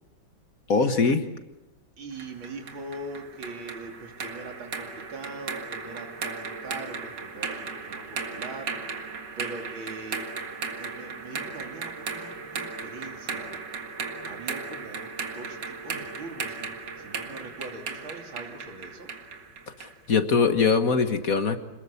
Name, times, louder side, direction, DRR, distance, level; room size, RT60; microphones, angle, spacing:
voice 1, 0.7-1.2 19.8-21.6, left 5 dB, 50° left, 8 dB, 1.7 m, -22 dB
voice 2, 2.0-8.7 9.4-10.3 10.8-13.6 14.2-19.1, right 3 dB, 85° right, 3 dB, 3.8 m, -41 dB
sound 1, 2.2-20.0, right 5 dB, 60° right, 2.4 m, -36 dB
27.0 x 21.0 x 8.4 m, 1.0 s
omnidirectional pair, 2.1 m